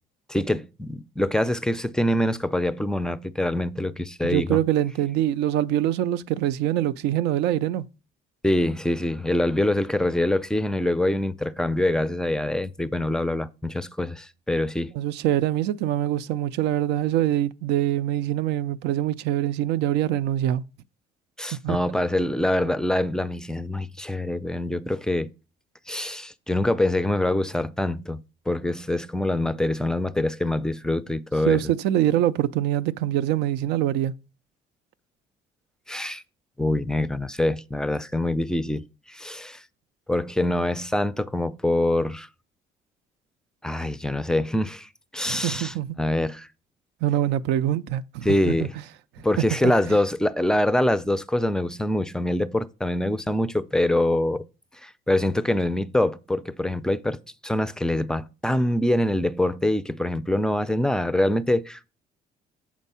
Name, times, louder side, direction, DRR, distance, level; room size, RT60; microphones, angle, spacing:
voice 1, 0.3-4.6 8.4-14.9 21.4-25.3 25.9-31.6 35.9-36.2 36.6-39.6 40.1-42.3 43.6-46.5 48.2-48.7 49.2-54.4 54.8-57.2 57.4-61.9, left 1 dB, 5° left, 0.4 m, -25 dB
voice 2, 4.2-7.9 14.9-20.6 21.6-21.8 31.5-34.2 45.2-45.9 47.0-48.7 49.9-50.0, right 12 dB, 85° right, 0.4 m, -24 dB
7.3 x 4.5 x 5.5 m
cardioid pair, 110°, 17 cm